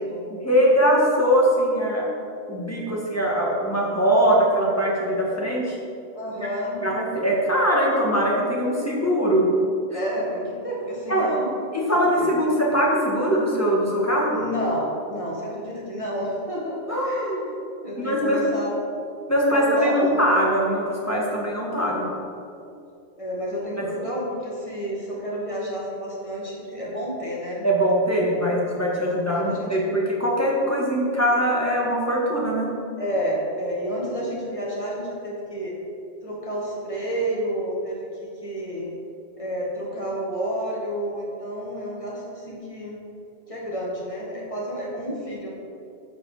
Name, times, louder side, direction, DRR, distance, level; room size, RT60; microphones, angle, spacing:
voice 1, 0.4-2.1 2.5-5.8 6.4-6.5 6.8-9.5 11.1-11.3 11.7-14.4 16.9-17.4 18.0-18.4 19.3-22.1 23.8-23.9 27.6-32.7, equal, 15° left, -4 dB, 1.9 m, -22 dB
voice 2, 6.1-6.8 9.9-11.6 12.0-12.4 14.3-17.4 17.8-18.7 19.5-20.2 23.2-27.7 29.0-30.0 33.0-35.8 36.2-38.9 39.4-43.0 43.5-45.5, equal, 30° left, -5 dB, 2.1 m, -30 dB
12.5 x 5.0 x 5.1 m, 2.6 s
omnidirectional pair, 1.1 m